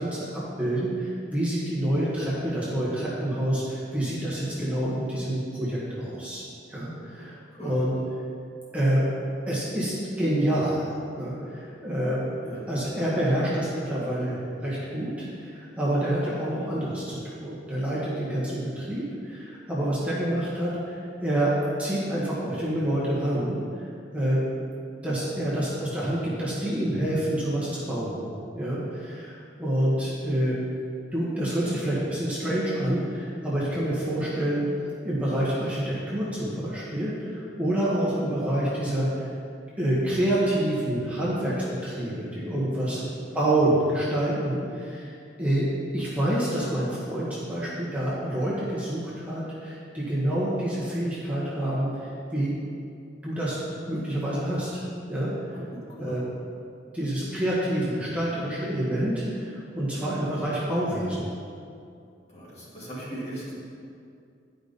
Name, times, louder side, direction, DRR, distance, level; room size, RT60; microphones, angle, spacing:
voice 1, 0.0-7.9 8.7-9.0 9.5-21.5 21.8-23.6 24.1-24.7 25.0-28.3 28.5-30.6 31.1-34.7 35.0-39.3 39.8-43.0 43.3-45.7 45.9-52.5 53.2-53.6 53.9-54.8 55.1-55.3 56.0-56.2 56.9-61.2, right 1 dB, 10° right, -9 dB, 1.4 m, -27 dB
voice 2, 7.2-7.7 12.4-12.6 42.9-43.1 55.5-56.2 62.3-63.5, right 1 dB, 40° left, -7 dB, 2.1 m, -39 dB
10.5 x 5.2 x 4.0 m, 2.4 s
head